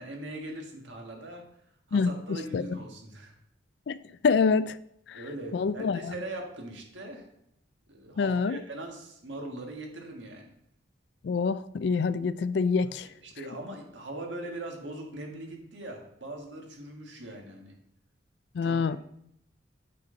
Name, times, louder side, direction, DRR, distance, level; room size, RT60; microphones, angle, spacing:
voice 1, 0.0-1.4 1.9-3.3 5.1-7.3 7.9-10.5 12.8-13.0 13.2-17.7 18.6-19.0, right 1 dB, 70° right, 1.7 m, -41 dB
voice 2, 1.9-2.6 3.9-4.0 4.2-4.8 5.1-5.2 5.5-6.1 8.2-8.6 11.2-13.1 18.5-19.0, left 5 dB, 60° left, 0.3 m, -26 dB
8.5 x 6.2 x 3.9 m
head